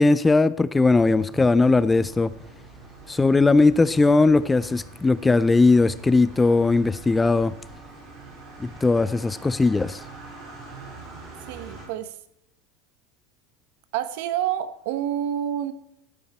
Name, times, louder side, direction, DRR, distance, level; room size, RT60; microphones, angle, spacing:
voice 1, 0.0-2.3 3.1-7.5 8.6-10.0, left 3 dB, 10° left, 0.3 m, -19 dB
sound 1, 0.7-11.9, right 3 dB, 35° right, 3.8 m, -44 dB
voice 2, 11.5-12.1 13.9-15.7, right 10 dB, 65° right, 1.0 m, -28 dB
13.0 x 9.1 x 4.2 m
supercardioid pair, 145°, 0 cm